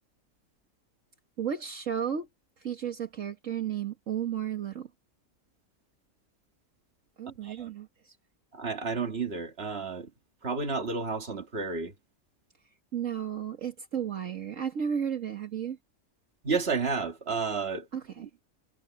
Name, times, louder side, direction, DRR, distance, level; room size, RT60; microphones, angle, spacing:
voice 1, 1.4-2.3 2.6-4.9 7.2-8.2 12.9-15.8 17.9-18.2, right 8 dB, 65° right, 1.8 m, -33 dB
voice 2, 8.5-10.1 10.4-11.9 16.4-17.9 18.2-18.3, right 4 dB, 45° right, 2.3 m, -31 dB
omnidirectional pair, 1.5 m